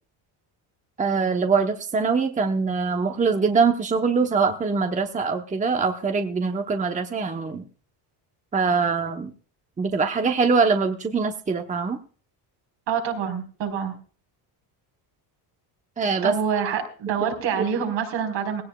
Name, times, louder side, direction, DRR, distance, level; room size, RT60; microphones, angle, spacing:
voice 1, 1.0-7.6 8.5-9.3 9.8-12.0 16.0-16.4, right 5 dB, 15° right, 5 dB, 1.0 m, -23 dB
voice 2, 12.9-13.9 16.2-18.6, right 7 dB, 70° right, 4 dB, 4.5 m, -26 dB
18.0 x 17.0 x 2.3 m, 0.41 s
cardioid pair, 140°, 45 cm